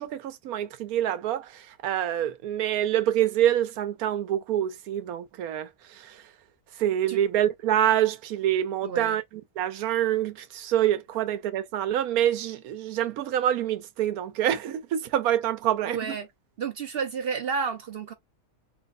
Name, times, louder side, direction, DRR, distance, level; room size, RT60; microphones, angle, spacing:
voice 1, 0.0-6.2 6.8-16.2, right 11 dB, 80° right, 1.1 m, -26 dB
voice 2, 8.8-9.2 15.8-16.3 16.6-18.1, right 6 dB, 60° right, 0.6 m, -31 dB
3.3 x 2.0 x 3.6 m
omnidirectional pair, 1.5 m